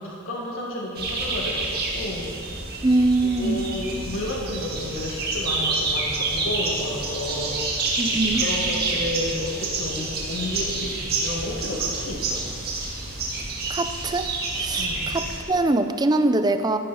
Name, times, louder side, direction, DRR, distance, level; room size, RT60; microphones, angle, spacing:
voice 1, 0.0-2.3 3.2-12.4 14.8-15.0, left 1 dB, 70° left, -3 dB, 2.0 m, -32 dB
sound 1, 1.0-15.4, right 3 dB, 50° right, 1.7 m, -28 dB
voice 2, 2.8-3.6 8.0-8.4 13.7-14.3 14.5-16.8, right 2 dB, 20° right, 9 dB, 0.5 m, -23 dB
14.0 x 10.5 x 4.3 m, 2.4 s
head